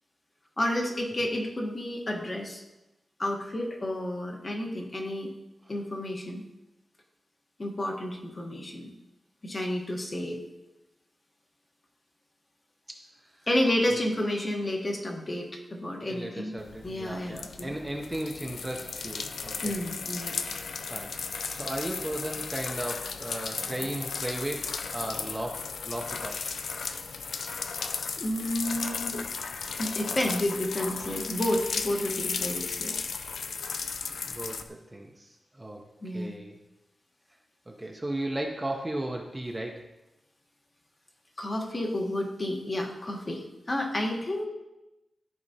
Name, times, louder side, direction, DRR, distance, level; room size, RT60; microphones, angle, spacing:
voice 1, 0.6-2.6 3.2-5.3 5.7-6.4 7.6-8.9 9.4-10.4 13.5-16.6 16.8-17.7 19.6-20.4 28.2-29.2 29.8-32.9 36.0-36.3 41.4-44.4, left 1 dB, 25° left, 2 dB, 1.0 m, -31 dB
voice 2, 16.1-19.7 20.9-21.1 21.5-26.4 34.2-35.8 36.1-36.6 37.7-39.8, right 1 dB, 15° right, 1 dB, 0.6 m, -35 dB
sound 1, 16.6-34.6, left 5 dB, 85° left, 0.5 m, -35 dB
13.5 x 4.8 x 2.8 m, 0.96 s
wide cardioid pair, 170°, 0 cm